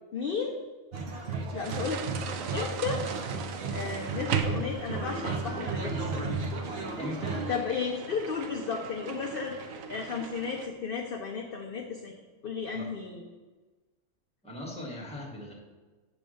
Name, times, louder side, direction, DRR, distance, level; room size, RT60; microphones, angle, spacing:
voice 1, 0.1-0.6 1.5-2.3 2.5-3.0 3.7-6.3 7.5-12.1 12.4-13.2, left 5 dB, 50° left, 1 dB, 0.8 m, -34 dB
sound 1, 0.9-7.6, right 3 dB, 50° right, 1.1 m, -34 dB
sound 2, 1.6-10.7, right 7 dB, 80° right, 1.0 m, -38 dB
voice 2, 7.0-7.5 12.7-12.9 14.4-15.5, left 1 dB, 5° left, -3 dB, 1.5 m, -39 dB
8.5 x 3.4 x 6.3 m, 1.3 s
omnidirectional pair, 1.4 m